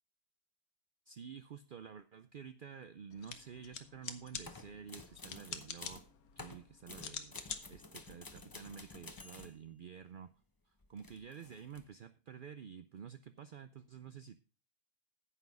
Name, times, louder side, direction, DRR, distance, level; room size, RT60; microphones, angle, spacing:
voice 1, 1.1-6.0 6.4-10.3 10.7-14.4, right 7 dB, 60° right, 11 dB, 0.5 m, -50 dB
sound 1, 3.1-9.2, left 7 dB, 75° left, 1.5 m, -48 dB
sound 2, 4.4-6.1 6.4-9.6 10.8-11.9, left 3 dB, 20° left, 0.6 m, -52 dB
9.8 x 8.4 x 5.3 m, 0.34 s
omnidirectional pair, 1.6 m